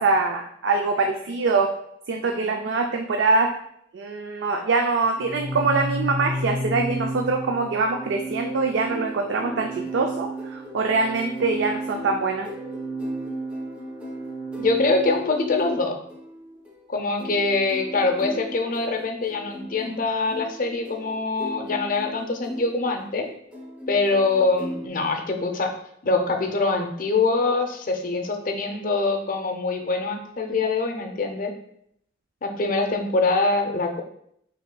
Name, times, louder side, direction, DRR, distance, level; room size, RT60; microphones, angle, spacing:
voice 1, 0.0-1.7 2.1-3.5 3.9-12.5, right 3 dB, 70° right, 3 dB, 0.4 m, -24 dB
Organ, 5.1-15.9, right 1 dB, 40° right, 1.7 m, -33 dB
sound 1, 8.9-24.9, left 1 dB, 5° right, 0.7 m, -38 dB
voice 2, 14.6-16.0 16.9-23.3 23.9-25.7 26.0-31.5 32.4-34.0, left 3 dB, 45° left, 5 dB, 0.5 m, -24 dB
5.4 x 3.5 x 2.2 m, 0.72 s
head